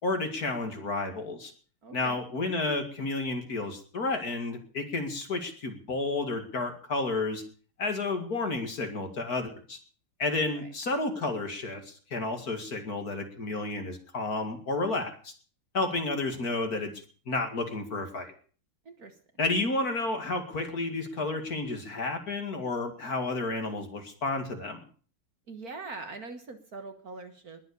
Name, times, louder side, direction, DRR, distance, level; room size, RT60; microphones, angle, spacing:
voice 1, 0.0-1.5 1.9-7.4 7.8-9.8 10.2-15.3 15.7-18.3 19.4-24.8, left 3 dB, 45° left, 5 dB, 2.6 m, -31 dB
voice 2, 1.8-2.2 10.5-10.7 18.9-19.2 25.5-27.6, right 3 dB, 45° right, 7 dB, 1.7 m, -42 dB
20.5 x 7.9 x 6.9 m, 0.42 s
omnidirectional pair, 2.3 m